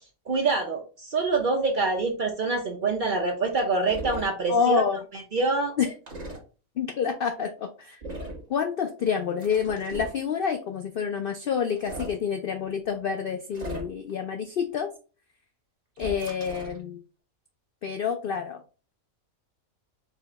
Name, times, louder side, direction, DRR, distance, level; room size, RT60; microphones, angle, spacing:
voice 1, 0.3-4.8 5.3-5.7, right 3 dB, 50° right, 2 dB, 0.6 m, -25 dB
sound 1, 3.9-4.3 6.1-6.4 8.0-8.4 9.4-10.2 11.7-12.2 13.5-14.1 16.0-16.8, right 1 dB, 30° right, 1.1 m, -37 dB
voice 2, 4.5-5.0 5.8-5.9 6.8-8.0 8.5-14.9 16.0-17.0 17.8-18.6, left 7 dB, 90° left, 6 dB, 0.4 m, -28 dB
4.8 x 2.2 x 3.9 m, 0.36 s
omnidirectional pair, 1.5 m